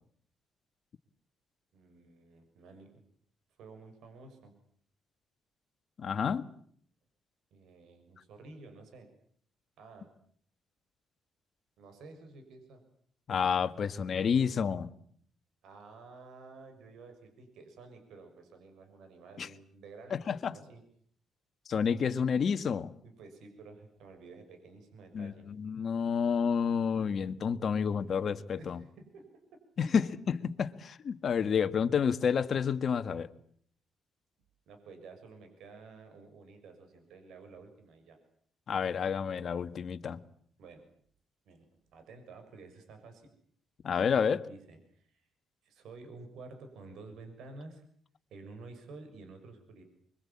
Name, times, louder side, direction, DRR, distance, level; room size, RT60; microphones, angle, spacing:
voice 1, 1.7-3.0 3.6-4.5 7.5-9.1 9.8-10.1 11.8-12.8 15.6-20.8 23.0-25.4 28.6-29.3 29.8-30.0 34.7-38.2 40.6-40.8 41.4-43.3 44.4-45.3 45.6-47.8 48.3-49.8, right 3 dB, 75° right, 6.7 m, -51 dB
voice 2, 6.0-6.5 13.3-14.9 19.4-19.5 20.1-20.5 21.7-22.9 25.1-28.8 29.8-33.3 38.7-40.2 43.8-44.5, left 6 dB, 55° left, 1.7 m, -29 dB
25.0 x 23.5 x 8.7 m
cardioid pair, 90°, 0 cm